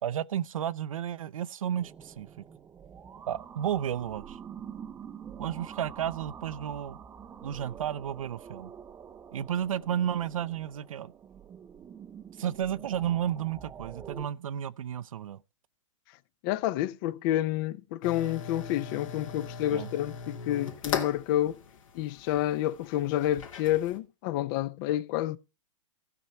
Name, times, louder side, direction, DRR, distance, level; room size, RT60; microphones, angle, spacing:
voice 1, 0.0-2.4 3.3-4.4 5.4-7.0 7.4-8.7 9.3-11.1 12.4-15.4 19.7-19.9, right 10 dB, 85° right, 0.6 m, -32 dB
sound 1, 1.8-14.3, right 8 dB, 15° right, 0.4 m, -46 dB
voice 2, 16.4-21.6 21.9-25.4, left 13 dB, 40° left, 0.5 m, -29 dB
sound 2, 18.0-24.0, left 6 dB, 80° left, 2.5 m, -39 dB
16.0 x 5.8 x 4.2 m
hypercardioid pair, 130°, 17 cm